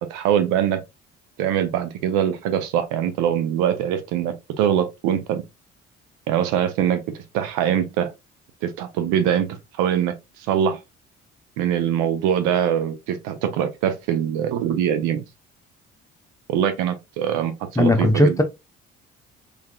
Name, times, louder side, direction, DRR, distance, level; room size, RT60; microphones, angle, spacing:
voice 1, 0.1-0.8 1.4-5.4 6.3-8.1 8.6-10.1 10.5-10.8 11.6-15.2 16.5-17.5 17.8-18.4, right 9 dB, 65° right, 0.7 m, -23 dB
voice 2, 17.8-18.4, left 1 dB, 10° left, 0.8 m, -17 dB
3.6 x 3.4 x 2.2 m
figure-of-eight pair, 50°, 34 cm